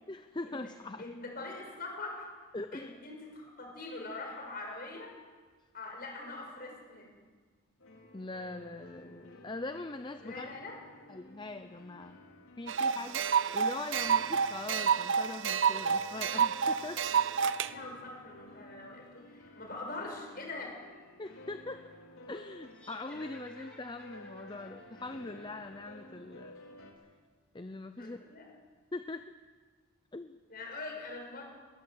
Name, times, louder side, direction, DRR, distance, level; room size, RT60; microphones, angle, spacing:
voice 1, 0.1-1.1 2.5-2.9 8.1-10.5 11.1-12.2 12.6-17.1 21.2-21.9 22.3-26.6 27.5-28.2 28.9-29.3 30.1-30.4, left 2 dB, 20° left, 9 dB, 0.6 m, -42 dB
voice 2, 1.0-2.3 2.7-5.2 5.7-7.1 10.2-10.8 17.6-20.7 28.0-28.5 30.5-31.4, left 2 dB, 45° left, 1 dB, 6.3 m, -43 dB
sound 1, 7.8-26.9, left 1 dB, 80° left, 4.1 m, -53 dB
sound 2, 12.7-17.7, right 7 dB, 60° right, 0.7 m, -29 dB
sound 3, 22.7-26.1, left 1 dB, 5° left, 3.4 m, -57 dB
21.0 x 19.5 x 8.1 m, 1.5 s
head